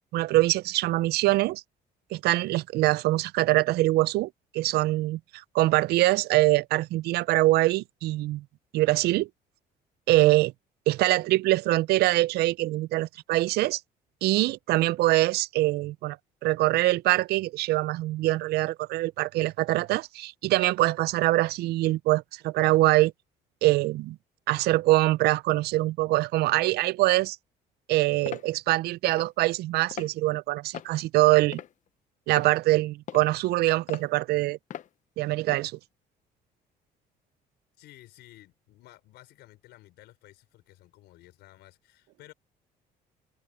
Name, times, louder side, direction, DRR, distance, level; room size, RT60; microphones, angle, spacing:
voice 1, 0.1-1.6 2.1-5.2 5.5-8.4 8.7-9.3 10.1-10.5 10.9-13.8 14.2-16.2 16.4-23.1 23.6-24.2 24.5-27.4 27.9-31.6 32.3-34.6 35.2-35.7, right 18 dB, 75° right, 0.4 m, -24 dB
sound 1, 28.3-28.5 29.1-29.3 29.9-30.1 30.7-31.0 31.5-31.9 32.3-32.5 33.1-33.3 33.9-34.1 34.7-34.9 35.5-35.7, left 10 dB, 50° left, 0.6 m, -39 dB
voice 2, 37.8-42.3, left 16 dB, 85° left, 5.5 m, -53 dB
cardioid pair, 110°, 17 cm